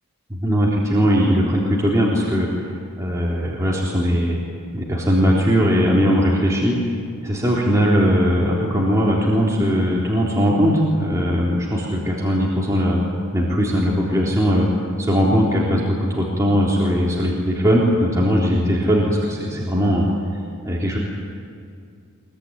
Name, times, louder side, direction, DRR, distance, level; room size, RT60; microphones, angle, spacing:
voice 1, 0.3-2.5 3.0-4.4 4.7-6.8 7.2-13.0 13.3-14.7 15.0-20.1 20.6-21.0, equal, 15° right, -5 dB, 3.8 m, -19 dB
24.0 x 23.0 x 9.9 m, 2.3 s
head